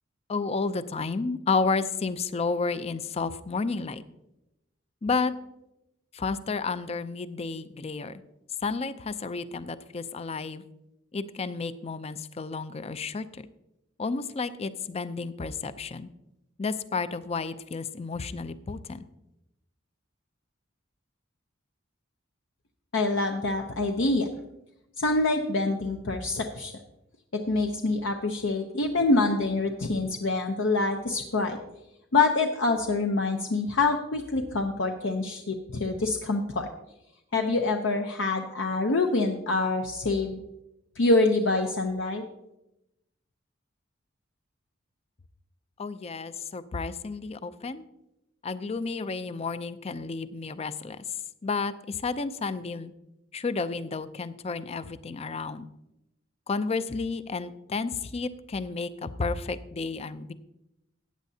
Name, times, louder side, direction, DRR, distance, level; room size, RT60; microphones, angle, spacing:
voice 1, 0.3-4.0 5.0-5.3 6.1-8.2 8.6-10.6 11.1-13.4 14.0-16.1 16.6-19.0 45.8-47.8 48.4-51.0 51.4-52.9 53.3-55.7 56.5-60.3, left 4 dB, 30° left, 14 dB, 0.5 m, -31 dB
voice 2, 22.9-24.3 25.0-26.7 27.3-31.6 32.1-36.7 37.3-40.4 41.0-42.2, left 3 dB, 70° left, 3 dB, 0.7 m, -26 dB
14.5 x 9.1 x 2.8 m, 0.88 s
head